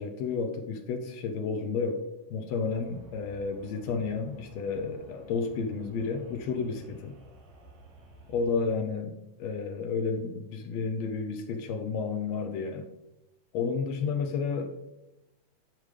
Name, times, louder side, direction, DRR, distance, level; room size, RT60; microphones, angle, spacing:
voice 1, 0.0-2.0 2.3-7.1 8.3-9.1 9.4-12.9 13.5-14.7, left 5 dB, 75° left, 5 dB, 1.7 m, -31 dB
sound 1, 2.6-8.6, right 1 dB, 75° right, 4.7 m, -53 dB
12.5 x 5.1 x 3.3 m, 0.94 s
omnidirectional pair, 3.7 m